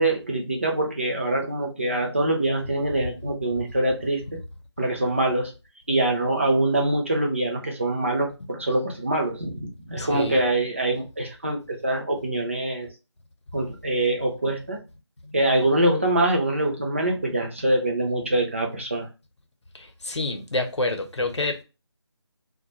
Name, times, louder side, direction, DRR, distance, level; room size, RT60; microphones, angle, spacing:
voice 1, 0.0-4.2 4.8-5.5 5.9-12.9 13.5-14.8 15.3-19.1, right 1 dB, 30° right, 0.4 m, -24 dB
voice 2, 10.0-10.4 20.1-21.6, left 2 dB, 80° left, 0.7 m, -27 dB
2.1 x 2.1 x 2.8 m
figure-of-eight pair, 165°, 14 cm